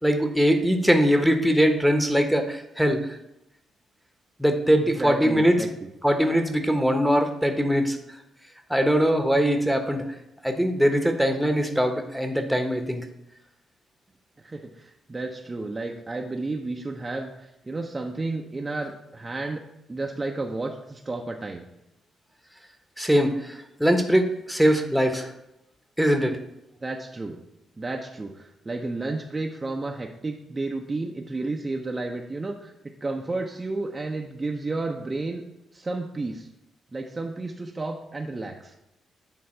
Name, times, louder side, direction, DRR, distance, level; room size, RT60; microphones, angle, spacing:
voice 1, 0.0-3.2 4.4-5.6 6.0-8.0 8.7-10.1 10.4-13.0 23.0-25.3 26.0-26.4, equal, ahead, 5 dB, 1.1 m, -22 dB
voice 2, 4.7-5.9 14.4-19.6 19.9-21.7 26.8-27.4 27.8-32.7 33.0-35.4 35.7-36.5 36.9-38.7, right 2 dB, 30° right, 2 dB, 0.7 m, -32 dB
8.7 x 3.4 x 4.5 m, 0.88 s
hypercardioid pair, 45°, 0 cm